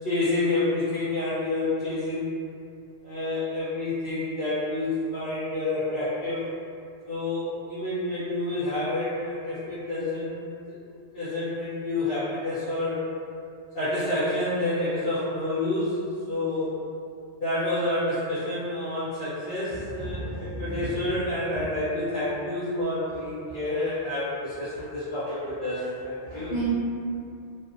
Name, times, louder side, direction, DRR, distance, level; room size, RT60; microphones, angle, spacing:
voice 1, 0.0-2.4 3.0-6.5 7.1-10.4 10.7-10.8 11.1-13.0 13.7-16.0 16.3-16.8 17.4-26.5, left 2 dB, 60° left, -13 dB, 0.9 m, -28 dB
voice 2, 20.0-21.0 23.5-23.6 26.3-26.7, right 2 dB, 60° right, -10 dB, 0.3 m, -33 dB
2.5 x 2.0 x 2.5 m, 2.4 s
omnidirectional pair, 1.1 m